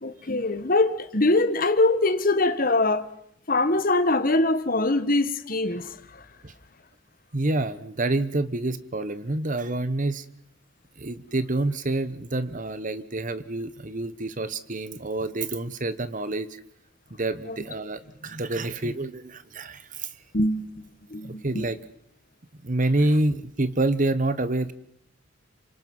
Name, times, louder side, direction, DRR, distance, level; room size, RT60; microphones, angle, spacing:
voice 1, 0.0-3.0 3.5-5.9 17.5-17.6 20.3-20.7 21.1-21.6, left 2 dB, 45° left, 1.5 m, -23 dB
voice 2, 7.3-10.3 11.0-16.5 17.2-20.1 21.2-21.8 22.6-24.7, right 2 dB, 40° right, 1.2 m, -27 dB
28.0 x 25.5 x 5.6 m
head